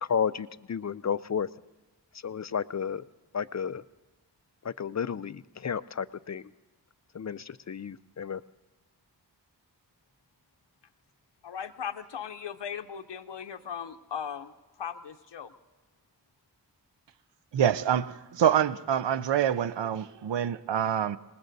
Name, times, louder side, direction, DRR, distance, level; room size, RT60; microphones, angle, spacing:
voice 1, 0.0-1.5 2.2-3.0 3.3-3.8 4.6-6.5 7.1-8.4, left 7 dB, 40° left, 16 dB, 0.4 m, -32 dB
voice 2, 11.4-14.5 14.8-15.5, left 8 dB, 80° left, 7 dB, 0.7 m, -38 dB
voice 3, 17.5-21.2, right 9 dB, 85° right, 15 dB, 0.6 m, -26 dB
26.5 x 20.0 x 2.7 m, 1.2 s
wide cardioid pair, 50°, 42 cm